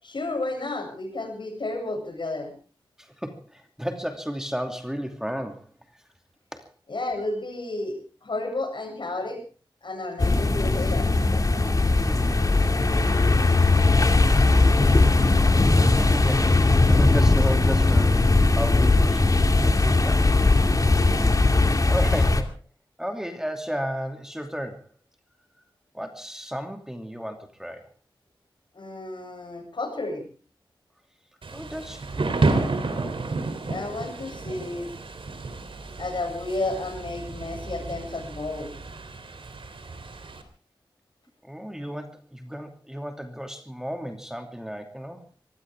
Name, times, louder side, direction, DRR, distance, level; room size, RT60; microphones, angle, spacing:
voice 1, 0.0-2.5 6.9-9.4 9.8-11.1 28.7-30.3 33.7-34.9 36.0-38.7, left 2 dB, 65° left, 4 dB, 7.9 m, -32 dB
voice 2, 3.0-5.7 6.5-6.6 12.1-12.4 15.9-16.6 16.9-19.3 19.6-20.4 21.9-22.6 23.0-24.9 25.9-27.9 31.5-32.5 41.4-45.2, equal, 5° right, 5 dB, 2.7 m, -33 dB
sound 1, 10.2-22.4, left 3 dB, 40° left, 2.4 m, -19 dB
Thunder / Rain, 31.4-40.4, right 3 dB, 90° right, 3.2 m, -31 dB
23.5 x 17.0 x 3.6 m, 0.39 s
wide cardioid pair, 85°, 9 cm